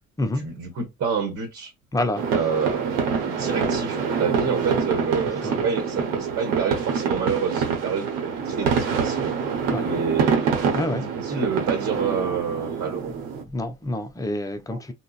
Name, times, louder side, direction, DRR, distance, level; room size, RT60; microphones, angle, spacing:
voice 1, 0.4-1.7 2.3-9.3 9.8-10.6 10.8-13.1 14.7-14.8, right 6 dB, 35° right, 1.2 m, -28 dB
voice 2, 1.9-2.2 5.4-5.6 9.7-9.9 10.7-11.0 13.4-14.9, left 1 dB, 10° left, 0.6 m, -27 dB
sound 1, 2.1-13.4, right 6 dB, 60° right, 1.0 m, -26 dB
3.7 x 2.1 x 2.4 m
figure-of-eight pair, 60°, 40 cm